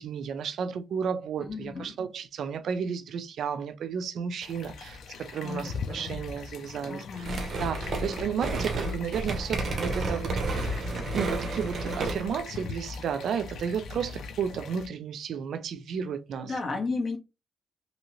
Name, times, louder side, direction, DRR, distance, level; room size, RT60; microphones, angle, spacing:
voice 1, 0.0-7.2 7.6-16.5, right 7 dB, 65° right, 0.3 m, -33 dB
voice 2, 1.4-2.0 5.4-6.2 6.8-7.4 16.4-17.2, left 3 dB, 40° left, 0.8 m, -34 dB
sound 1, 4.4-14.9, left 5 dB, 75° left, 0.4 m, -41 dB
sound 2, 7.2-12.4, right 2 dB, 45° right, 0.8 m, -31 dB
2.7 x 2.7 x 3.0 m
cardioid pair, 130°, 0 cm